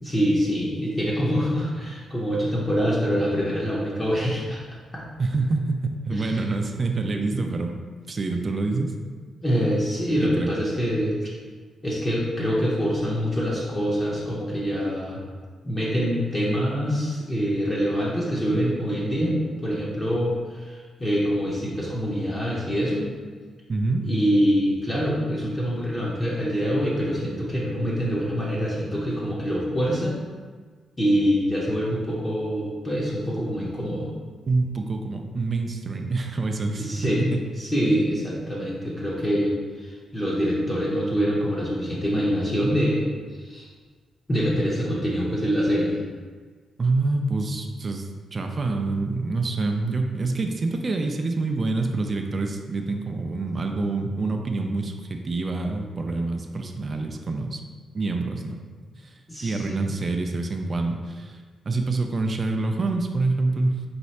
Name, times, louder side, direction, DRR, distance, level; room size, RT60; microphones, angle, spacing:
voice 1, 0.0-4.6 4.9-5.0 6.1-6.4 9.4-11.1 11.8-15.2 15.6-23.0 24.0-30.2 31.0-34.1 36.8-37.3 37.6-43.0 43.4-43.7 44.3-46.0 59.3-59.8, equal, 20° left, -6 dB, 0.6 m, -25 dB
voice 2, 5.2-7.8 8.1-8.9 10.2-10.5 23.7-24.1 34.5-37.4 46.8-57.6 57.9-58.6 59.0-59.1 59.4-61.4 61.6-63.8, right 3 dB, 30° right, 3 dB, 0.3 m, -26 dB
4.3 x 2.4 x 4.0 m, 1.5 s
wide cardioid pair, 155°, 0 cm